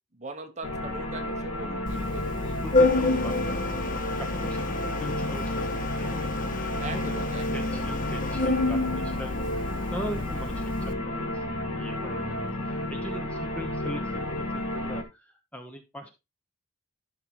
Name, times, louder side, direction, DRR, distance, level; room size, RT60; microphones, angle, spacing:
voice 1, 0.1-2.4 6.8-7.8 12.2-12.9, right 3 dB, 35° right, 5 dB, 1.2 m, -41 dB
sound 1, 0.6-15.0, left 1 dB, 85° left, 1.7 m, -32 dB
Organ, 1.9-10.9, left 2 dB, 40° left, 0.9 m, -29 dB
voice 2, 2.4-6.6 6.9-7.2 7.5-11.4 11.7-12.3 12.6-16.1, equal, 5° left, 5 dB, 0.9 m, -41 dB
12.0 x 5.7 x 3.1 m, 0.24 s
head